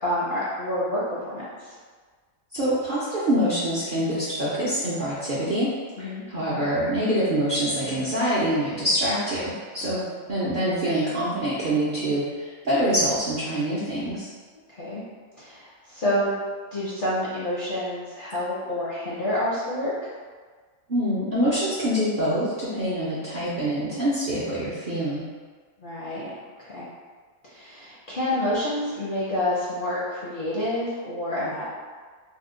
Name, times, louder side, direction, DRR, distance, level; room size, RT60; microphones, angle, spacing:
voice 1, 0.0-1.4 6.0-6.2 9.8-10.1 14.7-15.0 15.4-16.3 16.7-19.9 25.8-26.3 26.6-26.9 27.5-31.6, left 1 dB, 55° left, -8 dB, 0.6 m, -28 dB
voice 2, 2.5-5.7 6.0-10.0 10.3-14.3 20.9-25.3, equal, 60° right, -9 dB, 0.5 m, -25 dB
2.7 x 2.1 x 3.6 m, 1.5 s
omnidirectional pair, 1.5 m